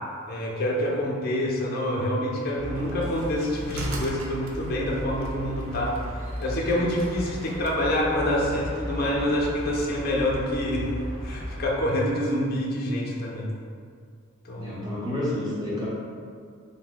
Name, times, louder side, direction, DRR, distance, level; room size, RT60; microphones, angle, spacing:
voice 1, 0.3-5.9 6.4-10.9 11.2-13.5 14.4-14.8, left 1 dB, 45° left, -2 dB, 0.4 m, -26 dB
sound 1, 2.6-11.6, equal, 40° right, 1.1 m, -36 dB
sound 2, 2.8-7.8, right 1 dB, 75° right, 0.4 m, -41 dB
voice 2, 14.5-15.9, left 1 dB, 20° right, -7 dB, 0.6 m, -30 dB
2.6 x 2.1 x 3.7 m, 2.2 s
head